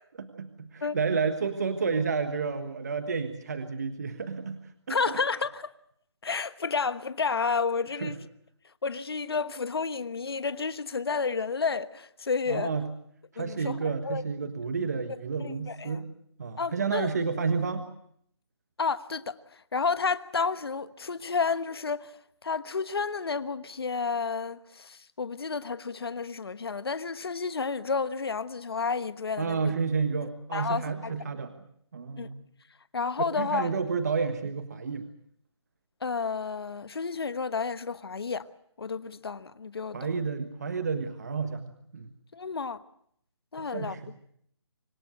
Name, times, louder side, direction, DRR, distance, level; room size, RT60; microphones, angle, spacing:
voice 1, 0.2-5.0 8.0-8.2 12.5-12.9 13.3-16.1 16.4-17.9 29.4-31.5 31.9-32.4 33.3-35.1 39.9-42.1 43.7-44.1, right 5 dB, 35° right, 1.4 m, -30 dB
voice 2, 4.9-5.7 6.2-8.2 8.8-12.7 13.4-13.8 14.0-14.2 15.4-16.0 16.6-17.1 18.8-19.4 19.7-22.1 22.4-29.7 30.2-31.1 32.2-32.3 32.9-33.7 36.0-38.4 38.8-40.1 42.3-42.8 43.5-44.0, left 5 dB, 60° left, 1.2 m, -31 dB
26.0 x 17.0 x 8.1 m
hypercardioid pair, 175°, 15 cm